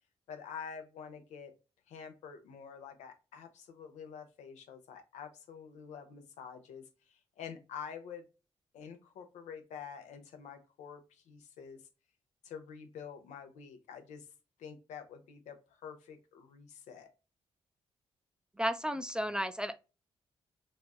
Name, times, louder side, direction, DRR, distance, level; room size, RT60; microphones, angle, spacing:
voice 1, 0.3-1.5 1.9-8.3 8.7-11.8 12.4-14.3 14.6-17.1, left 7 dB, 85° left, 0.7 m, -47 dB
voice 2, 18.6-19.8, equal, 5° right, 0.3 m, -33 dB
3.1 x 2.5 x 2.3 m
supercardioid pair, 55°, 12 cm